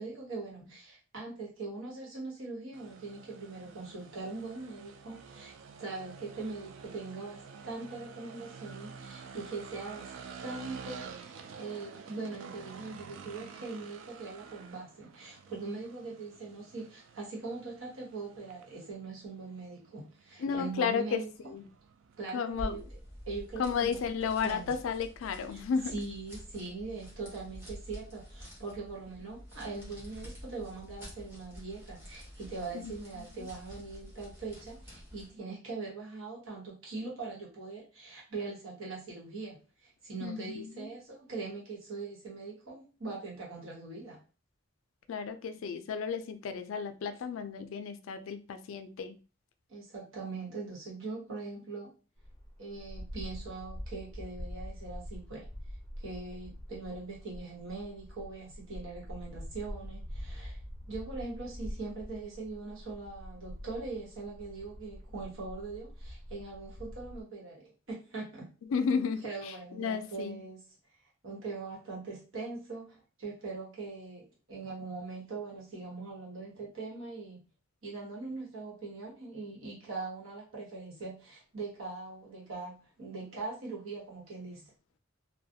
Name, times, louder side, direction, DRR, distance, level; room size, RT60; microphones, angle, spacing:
voice 1, 0.0-10.1 10.4-11.3 11.6-21.3 22.2-22.8 23.3-24.0 24.4-24.7 25.5-25.6 25.9-39.6 39.8-44.2 49.7-51.9 52.6-55.5 56.0-60.6 60.9-68.5 69.2-70.6 71.2-77.4 77.8-84.6, right 3 dB, 90° right, 1.1 m, -41 dB
sound 1, 2.7-22.6, right 6 dB, 70° right, 0.3 m, -49 dB
voice 2, 20.4-21.2 21.5-21.7 22.3-22.8 23.6-25.9 32.7-32.9 33.2-33.3 40.2-40.9 45.1-49.2 68.7-70.4, left 6 dB, 80° left, 0.3 m, -33 dB
sound 2, 22.5-35.4, equal, 10° right, 0.9 m, -48 dB
sound 3, 52.2-67.2, equal, 15° left, 0.4 m, -45 dB
2.3 x 2.1 x 2.7 m
head